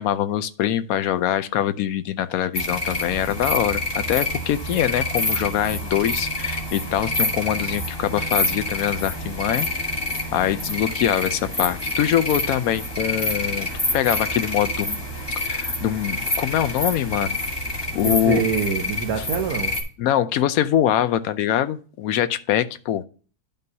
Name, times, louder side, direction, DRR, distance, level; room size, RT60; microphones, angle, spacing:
voice 1, 0.0-9.7 10.3-13.7 13.9-15.0 15.4-17.4 17.9-18.4 20.0-23.0, left 11 dB, 75° left, 12 dB, 1.0 m, -23 dB
sound 1, 2.5-19.8, left 1 dB, 20° left, 1.2 m, -27 dB
voice 2, 18.0-19.7, right 6 dB, 75° right, 2 dB, 1.3 m, -25 dB
11.0 x 5.3 x 2.8 m, 0.40 s
omnidirectional pair, 1.6 m